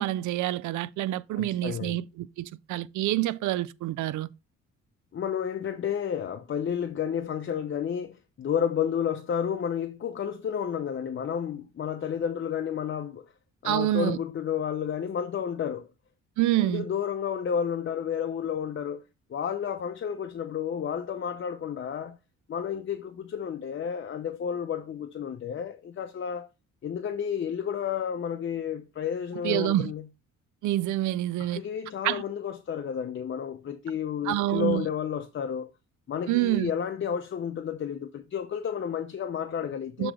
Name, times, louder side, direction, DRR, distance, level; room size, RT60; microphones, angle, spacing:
voice 1, 0.0-4.3 13.6-14.2 16.4-16.9 29.4-29.9 30.6-31.6 32.0-32.2 34.2-34.9 36.3-36.7 40.0-40.1, right 15 dB, 75° right, 0.5 m, -27 dB
voice 2, 1.4-2.0 5.1-13.3 13.6-15.9 16.6-19.0 19.3-22.2 22.5-26.5 26.8-30.1 31.4-35.7 36.1-40.1, left 8 dB, 40° left, 0.7 m, -31 dB
7.2 x 3.1 x 4.9 m
cardioid pair, 90°, 30 cm